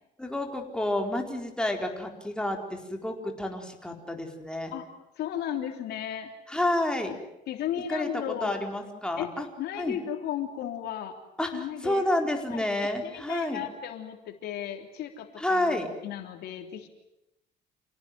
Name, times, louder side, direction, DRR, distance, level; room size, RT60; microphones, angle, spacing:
voice 1, 0.2-4.7 6.5-7.1 7.9-8.1 8.4-9.5 9.8-10.0 11.4-13.6 15.4-15.9, left 1 dB, 5° left, 2 dB, 4.4 m, -29 dB
voice 2, 5.2-6.3 7.1-7.2 7.5-11.2 11.5-12.1 12.5-12.7 13.0-16.9, left 10 dB, 75° left, 5 dB, 3.3 m, -35 dB
28.0 x 18.0 x 9.4 m, 0.89 s
cardioid pair, 110°, 17 cm